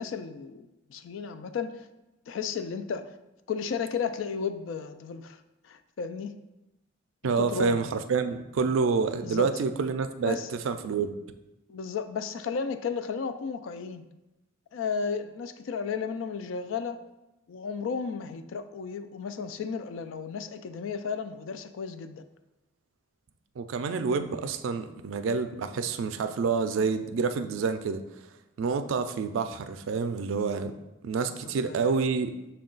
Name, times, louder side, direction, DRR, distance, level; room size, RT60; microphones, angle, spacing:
voice 1, 0.0-1.9 2.3-3.2 3.5-6.3 7.2-7.8 9.2-9.5 10.3-10.5 11.7-14.0 14.7-17.0 17.5-22.2 31.3-31.9, left 6 dB, 75° left, 10 dB, 0.3 m, -34 dB
voice 2, 7.2-11.1 23.6-28.0 28.6-30.7 31.0-32.3, right 5 dB, 80° right, 9 dB, 0.3 m, -28 dB
6.2 x 2.2 x 3.8 m, 0.96 s
head